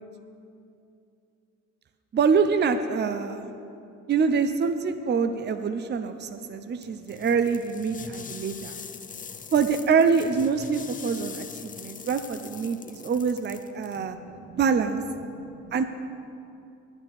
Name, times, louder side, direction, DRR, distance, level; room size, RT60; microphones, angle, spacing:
voice 1, 2.1-3.5 4.1-8.8 9.5-14.2 14.5-15.0 15.7-15.8, right 5 dB, 35° right, 9 dB, 0.6 m, -25 dB
sound 1, 6.8-14.0, left 6 dB, 25° left, 0.5 m, -43 dB
voice 2, 13.9-14.6 15.2-15.8, right 8 dB, 80° right, 3 dB, 0.8 m, -49 dB
10.5 x 6.2 x 8.6 m, 2.7 s
cardioid pair, 90°, 30 cm